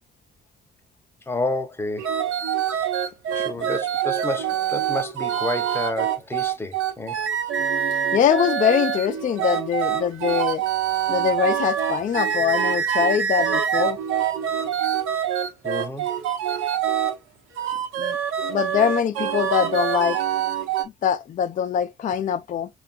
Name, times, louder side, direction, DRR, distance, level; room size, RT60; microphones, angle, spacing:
voice 1, 1.3-2.1 3.3-7.2 15.6-16.1, left 2 dB, 10° left, 0.7 m, -30 dB
sound 1, 2.0-17.1 17.6-20.8, right 9 dB, 90° right, 1.0 m, -25 dB
voice 2, 8.1-10.6 11.1-14.0 18.0-18.2 18.5-20.2 21.0-22.7, left 8 dB, 40° left, 0.4 m, -23 dB
6.7 x 2.3 x 2.4 m
cardioid pair, 90°, 20 cm